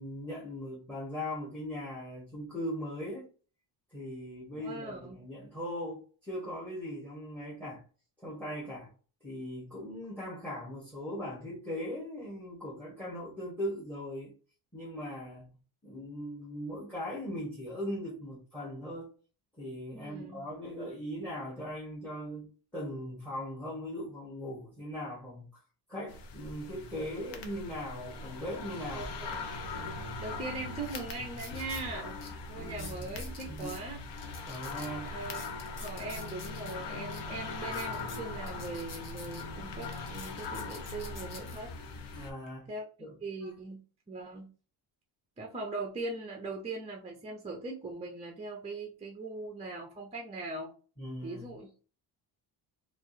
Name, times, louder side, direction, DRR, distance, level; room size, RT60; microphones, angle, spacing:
voice 1, 0.0-3.2 3.9-7.8 8.2-8.9 9.2-14.3 14.7-15.5 15.8-19.1 19.6-25.6 25.9-29.3 32.5-33.2 33.5-33.8 34.5-35.1 42.1-42.7 43.0-43.1 43.4-43.5 51.0-51.5, equal, 5° left, 1.0 m, -39 dB
voice 2, 4.6-5.2 19.9-20.4 28.9-29.3 30.2-32.2 32.5-34.0 35.0-41.7 42.7-42.8 43.2-43.8 44.1-44.5 45.4-50.7 51.2-51.8, right 3 dB, 15° right, 0.4 m, -40 dB
sound 1, 26.1-42.3, left 3 dB, 70° left, 0.8 m, -41 dB
sound 2, 30.7-31.9 32.2-32.3 32.7-33.8 34.2-36.7 37.1-37.2 37.6-39.4 39.8-41.6 42.2-42.5, left 4 dB, 45° left, 1.1 m, -48 dB
4.4 x 2.4 x 2.6 m
cardioid pair, 175°, 43 cm